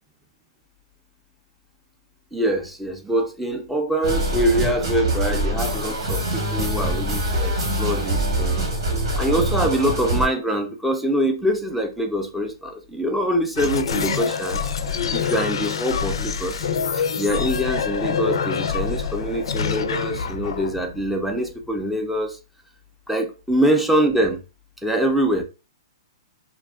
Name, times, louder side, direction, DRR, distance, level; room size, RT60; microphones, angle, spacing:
voice 1, 2.3-8.7 9.2-14.6 14.9-16.7 16.9-22.4 23.1-24.4 24.8-25.4, equal, 5° right, 0.4 m, -24 dB
sound 1, 4.0-10.3, right 1 dB, 80° right, 1.3 m, -24 dB
sound 2, 13.5-21.8, left 6 dB, 80° left, 0.3 m, -26 dB
2.7 x 2.3 x 2.3 m
hypercardioid pair, 140°, 3 cm